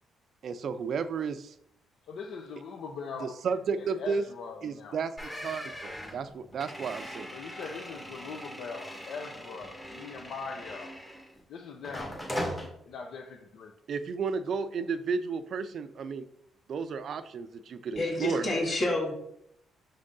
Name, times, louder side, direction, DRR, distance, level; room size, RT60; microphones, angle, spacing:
voice 1, 0.4-1.5 3.2-4.2 4.6-5.1 5.4-7.3 13.9-16.3 16.7-18.5, right 5 dB, 55° right, 0.4 m, -32 dB
voice 2, 2.1-3.4 3.8-5.0 7.3-10.9 11.5-12.2 12.9-13.7, left 5 dB, 70° left, 0.6 m, -41 dB
sound 1, 5.2-11.4 11.8-12.7, equal, 15° left, 1.5 m, -40 dB
voice 3, 18.0-19.1, left 2 dB, 45° left, 2.5 m, -28 dB
6.6 x 3.8 x 3.7 m
cardioid pair, 105°, 0 cm